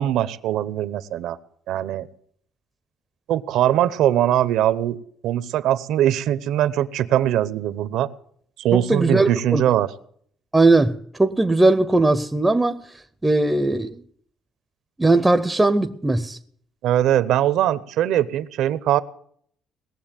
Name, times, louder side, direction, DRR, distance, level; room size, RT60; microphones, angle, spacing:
voice 1, 0.0-1.4 1.7-2.1 3.3-5.0 5.2-8.1 8.6-9.9 16.8-19.0, right 12 dB, 70° right, 0.8 m, -21 dB
voice 2, 8.7-9.6 10.5-12.8 13.2-13.9 15.0-16.4, right 2 dB, 10° right, 0.5 m, -19 dB
19.5 x 7.3 x 9.0 m
cardioid pair, 165°, 0 cm